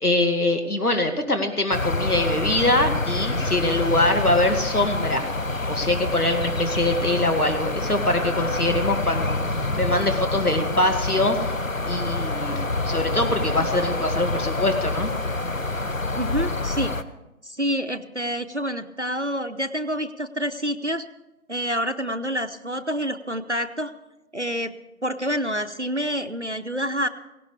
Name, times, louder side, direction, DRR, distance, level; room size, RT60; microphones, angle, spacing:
voice 1, 0.0-5.3 5.7-9.4 9.8-11.6 11.9-15.1, left 1 dB, 80° left, 5 dB, 2.2 m, -23 dB
sound 1, 1.7-17.0, left 2 dB, 60° left, 1.0 m, -27 dB
voice 2, 16.1-16.9 17.4-21.1 21.5-23.9 24.3-24.7 25.0-27.1, equal, 50° right, 7 dB, 0.7 m, -27 dB
17.5 x 17.5 x 3.4 m, 0.99 s
figure-of-eight pair, 180°, 44 cm